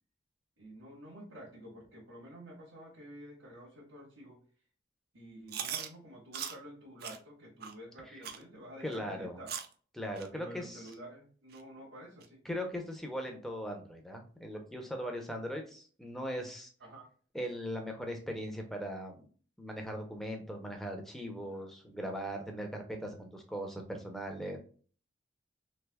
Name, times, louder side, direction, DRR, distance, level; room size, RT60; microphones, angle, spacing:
voice 1, 0.6-4.4 5.1-9.6 10.3-12.4 16.8-17.1 21.5-22.2, equal, 80° right, -5 dB, 1.4 m, -50 dB
Chewing mastication, 5.5-5.9 6.3-6.6 7.0-7.2 7.6-7.7 8.2-8.4 8.9-9.0 9.5-9.7 10.2-10.3 10.9-11.0 11.5-11.6 12.2-12.3, right 8 dB, 50° right, 0.4 m, -39 dB
voice 2, 8.8-9.4 10.0-10.9 12.5-16.7 17.3-19.3 19.6-24.6, equal, ahead, 3 dB, 0.6 m, -39 dB
3.3 x 3.2 x 2.2 m, 0.42 s
head